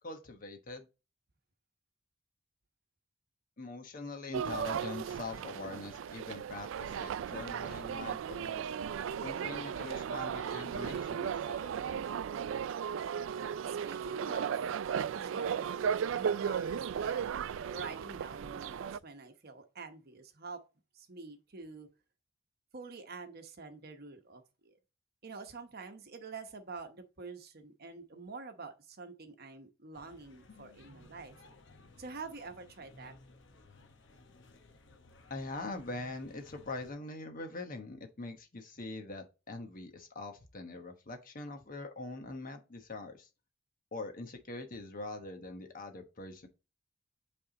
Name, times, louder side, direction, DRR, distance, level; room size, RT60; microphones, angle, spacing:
voice 1, 0.0-0.9 3.6-8.7 9.2-12.2 35.3-43.3 43.9-46.5, left 2 dB, 45° left, 1.1 m, -43 dB
sound 1, 4.3-19.0, right 7 dB, 65° right, 0.3 m, -36 dB
voice 2, 13.6-14.6 15.1-17.2 17.7-20.6 20.9-21.9 22.7-24.7 25.2-31.3 32.0-33.1, right 4 dB, 50° right, 1.0 m, -46 dB
sound 2, 29.9-36.9, left 2 dB, 60° left, 1.0 m, -58 dB
8.5 x 3.5 x 3.9 m
head